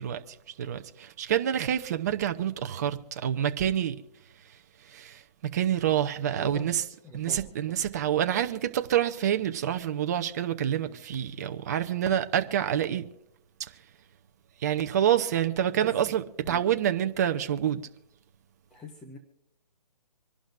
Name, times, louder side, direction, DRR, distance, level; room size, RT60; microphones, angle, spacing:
voice 1, 0.0-4.0 4.4-6.8 7.1-13.1 13.6-13.8 14.6-17.8, right 10 dB, 25° right, 0.7 m, -27 dB
voice 2, 6.4-7.8 10.8-11.0 15.8-16.1 16.4-16.6 18.7-19.2, left 1 dB, 5° left, 0.4 m, -45 dB
26.0 x 11.5 x 2.6 m
hypercardioid pair, 160°, 21 cm